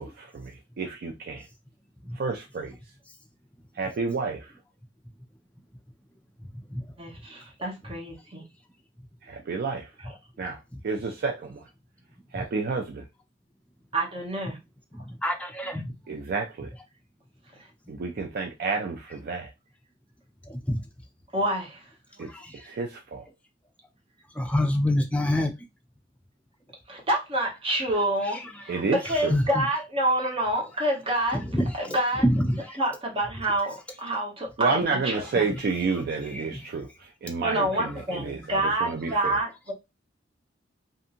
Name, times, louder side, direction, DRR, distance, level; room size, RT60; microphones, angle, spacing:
voice 1, 0.0-1.5 2.1-2.8 3.8-4.5 9.2-9.9 10.4-10.6 10.8-11.6 12.3-13.0 16.1-16.7 17.9-19.5 22.2-23.2 28.7-29.3 34.6-39.4, right 4 dB, 55° right, 0.4 m, -30 dB
voice 2, 7.0-8.4 10.0-10.1 13.9-14.6 21.3-21.8 26.9-31.4 31.7-32.2 32.7-35.4 37.4-39.7, right 1 dB, 30° right, 1.0 m, -28 dB
voice 3, 14.9-15.9 20.5-20.8 22.3-22.5 24.4-25.5 29.3-29.6 31.3-31.7 32.2-32.8 36.4-36.6, left 1 dB, 5° left, 0.5 m, -26 dB
2.7 x 2.6 x 2.5 m
head